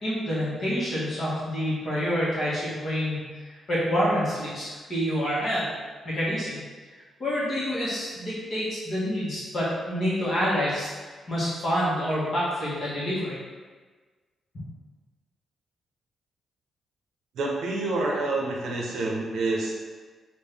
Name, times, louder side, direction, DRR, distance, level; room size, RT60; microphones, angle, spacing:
voice 1, 0.0-5.7 6.0-6.6 7.2-13.4, equal, 35° left, -8 dB, 1.2 m, -27 dB
voice 2, 17.3-19.8, right 2 dB, 70° right, -2 dB, 0.7 m, -28 dB
3.6 x 2.6 x 3.4 m, 1.4 s
wide cardioid pair, 175°, 0 cm